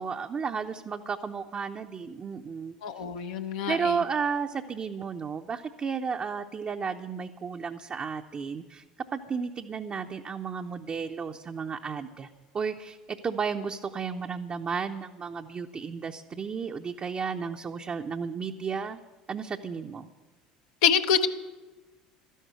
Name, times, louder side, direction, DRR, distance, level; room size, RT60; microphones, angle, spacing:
voice 1, 0.0-3.0 3.7-8.8 9.1-12.3 12.5-19.0 19.3-20.1, right 6 dB, 30° right, 3 dB, 0.7 m, -33 dB
voice 2, 2.8-4.0 20.8-21.3, left 7 dB, 70° left, 7 dB, 0.9 m, -25 dB
12.5 x 11.0 x 8.1 m, 1.2 s
hypercardioid pair, 70°, 4 cm